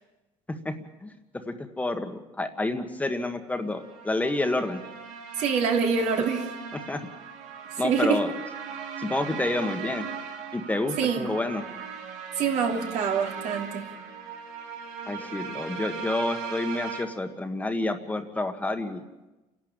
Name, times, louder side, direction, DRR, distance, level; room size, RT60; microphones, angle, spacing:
voice 1, 1.5-4.8 6.9-7.0 7.8-8.3 9.0-10.0 10.5-11.6 15.1-19.0, left 2 dB, 10° left, 6 dB, 1.6 m, -29 dB
sound 1, 3.7-17.0, right 6 dB, 90° right, 2.9 m, -38 dB
voice 2, 5.4-6.5 7.8-8.2 11.0-11.4 12.4-13.9, right 6 dB, 70° right, 3 dB, 3.1 m, -25 dB
30.0 x 11.5 x 9.0 m, 1.1 s
cardioid pair, 125°, 13 cm